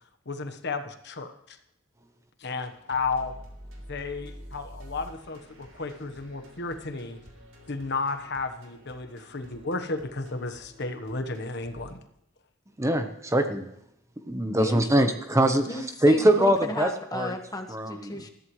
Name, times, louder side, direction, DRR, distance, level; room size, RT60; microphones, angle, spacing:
voice 1, 0.3-1.6 2.4-3.3 3.9-7.2 7.7-12.0, left 3 dB, 55° left, 8 dB, 1.2 m, -33 dB
sound 1, 2.6-11.9, equal, 75° right, 3.6 m, -48 dB
voice 2, 12.8-13.7 14.3-15.6 16.0-17.3 17.7-18.1, right 1 dB, 15° right, 6 dB, 0.9 m, -23 dB
voice 3, 15.6-18.3, left 1 dB, 20° left, 4 dB, 1.5 m, -34 dB
20.5 x 14.5 x 3.2 m, 0.79 s
head